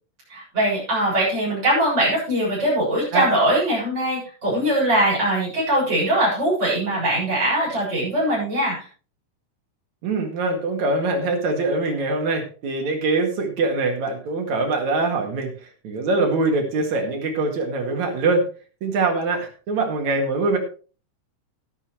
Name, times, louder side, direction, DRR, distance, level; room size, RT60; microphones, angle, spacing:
voice 1, 0.3-8.9, right 1 dB, 20° right, -7 dB, 7.4 m, -21 dB
voice 2, 10.0-15.5 15.8-18.4 18.8-20.6, right 3 dB, 65° right, 3 dB, 3.3 m, -23 dB
12.5 x 12.5 x 3.2 m, 0.37 s
omnidirectional pair, 3.6 m